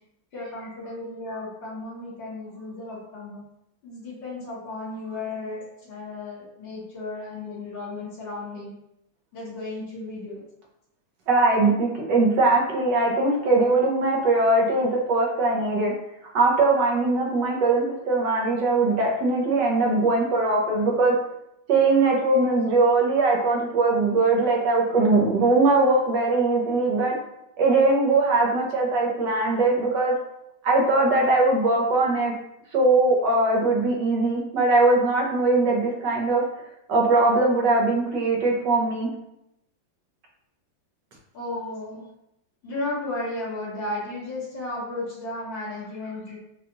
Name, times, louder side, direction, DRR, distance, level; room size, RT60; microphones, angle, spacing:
voice 1, 0.3-3.4 3.8-8.7 9.3-10.4 41.3-42.0 42.6-46.4, left 2 dB, 75° left, -13 dB, 2.0 m, -34 dB
voice 2, 11.3-15.9 16.3-21.1 21.7-27.1 27.6-30.1 30.6-32.3 32.7-36.4 36.9-39.1, right 3 dB, 70° right, -1 dB, 1.4 m, -21 dB
5.0 x 2.4 x 2.9 m, 0.83 s
omnidirectional pair, 2.0 m